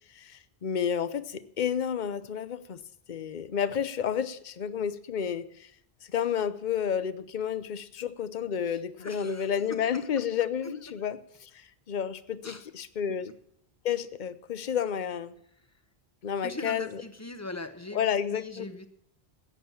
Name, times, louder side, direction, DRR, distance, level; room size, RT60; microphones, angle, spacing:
voice 1, 0.1-2.8 3.1-5.7 6.0-13.3 13.8-15.3 16.2-17.0 17.9-18.6, left 8 dB, 50° left, 14 dB, 0.9 m, -31 dB
voice 2, 8.7-10.2 10.6-10.7 11.0-11.1 12.4-12.7 15.6-15.7 16.4-18.9, left 2 dB, 15° left, 9 dB, 1.2 m, -41 dB
14.5 x 9.5 x 7.1 m, 0.71 s
omnidirectional pair, 1.1 m